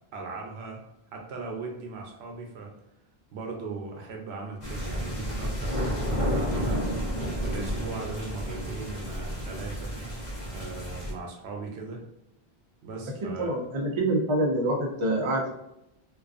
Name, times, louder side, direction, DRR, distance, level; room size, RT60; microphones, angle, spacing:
voice 1, 0.1-0.8 1.1-2.7 3.3-6.8 7.4-9.9 10.5-12.0 12.8-13.5, right 4 dB, 85° right, 1 dB, 0.9 m, -38 dB
sound 1, 4.6-11.1, equal, 45° left, 0.8 m, -31 dB
voice 2, 13.4-15.5, right 1 dB, 40° right, -1 dB, 0.4 m, -26 dB
2.4 x 2.3 x 2.4 m, 0.84 s
omnidirectional pair, 1.1 m